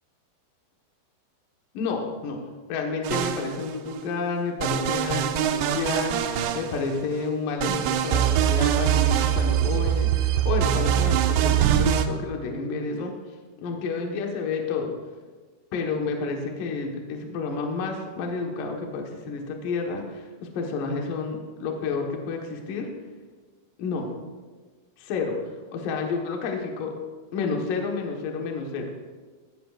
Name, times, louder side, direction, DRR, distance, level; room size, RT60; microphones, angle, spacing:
voice 1, 1.7-2.4 2.7-13.1 13.6-14.9 15.7-22.9 23.8-24.1 25.0-27.0 27.3-28.9, left 4 dB, 60° left, 1 dB, 2.6 m, -30 dB
sound 1, 3.0-3.9 4.6-7.1 7.6-12.1, right 10 dB, 85° right, 2.9 m, -23 dB
18.5 x 13.0 x 2.5 m, 1.4 s
omnidirectional pair, 5.1 m